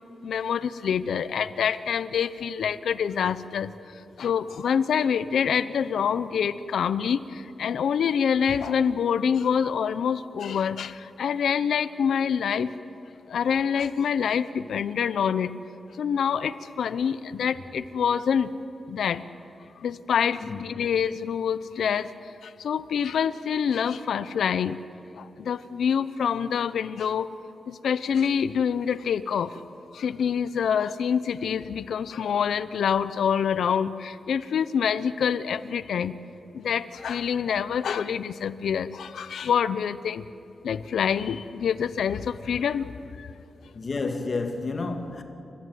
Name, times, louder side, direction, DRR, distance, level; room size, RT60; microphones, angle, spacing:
voice 1, 0.2-3.7 4.2-12.7 13.3-15.5 16.0-18.5 18.9-19.2 19.8-22.1 22.4-24.8 25.2-27.3 27.7-29.6 29.9-36.1 36.5-40.3 40.6-42.9 43.2-43.3, left 7 dB, 90° left, 0.8 m, -26 dB
voice 2, 20.4-20.9 43.7-45.2, left 3 dB, 40° left, 1.9 m, -31 dB
29.0 x 14.0 x 9.5 m
wide cardioid pair, 180°, 0 cm